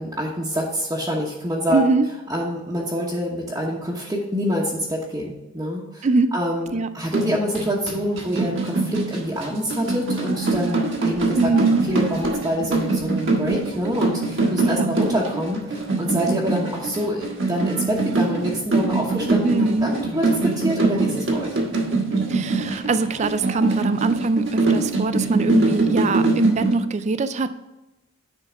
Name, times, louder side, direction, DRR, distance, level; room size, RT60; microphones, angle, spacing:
voice 1, 0.0-1.9 2.3-11.4 11.9-21.6, equal, 15° right, -6 dB, 1.1 m, -26 dB
voice 2, 1.7-2.1 6.0-6.3 6.7-6.9 11.4-11.8 14.6-14.9 19.4-19.9 22.3-27.5, right 3 dB, 35° right, 12 dB, 0.4 m, -21 dB
sound 1, 7.1-26.7, right 3 dB, 65° right, 1.4 m, -23 dB
10.0 x 3.8 x 5.1 m, 0.98 s
head